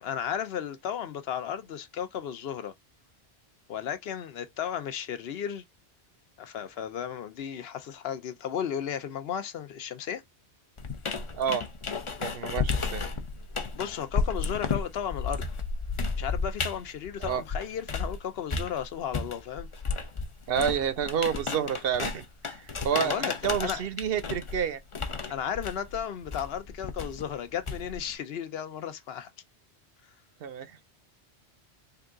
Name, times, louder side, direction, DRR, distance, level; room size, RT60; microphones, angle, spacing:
voice 1, 0.0-2.7 3.7-5.6 6.4-10.2 13.7-15.4 16.2-19.7 22.9-23.9 25.3-29.3, left 8 dB, 65° left, 0.8 m, -34 dB
sound 1, 10.8-18.2 18.5-28.1, left 4 dB, 35° left, 0.5 m, -33 dB
voice 2, 11.3-11.7 12.2-13.1 17.2-17.4 20.5-24.8 30.4-30.8, right 8 dB, 65° right, 0.7 m, -29 dB
3.8 x 2.3 x 3.6 m
omnidirectional pair, 1.1 m